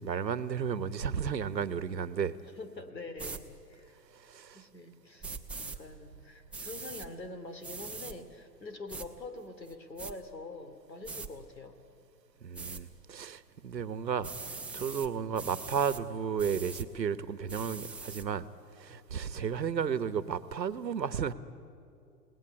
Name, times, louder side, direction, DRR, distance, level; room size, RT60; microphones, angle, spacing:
voice 1, 0.0-2.3 4.1-4.6 12.4-18.5 18.7-21.3, right 7 dB, 85° right, 15 dB, 1.3 m, -33 dB
voice 2, 2.6-4.0 4.5-5.3 5.6-11.8 15.3-15.5 19.3-19.6, left 2 dB, 90° left, 9 dB, 2.7 m, -45 dB
sound 1, 3.2-3.4 5.2-5.8 6.5-7.1 7.6-8.1 8.9-9.1 9.7-10.1 11.0-11.3 12.5-12.8 14.2-15.1 15.3-16.0 16.4-16.9 17.5-18.2, right 4 dB, 5° right, 1.0 m, -42 dB
28.5 x 18.5 x 9.9 m, 2.6 s
hypercardioid pair, 120°, 49 cm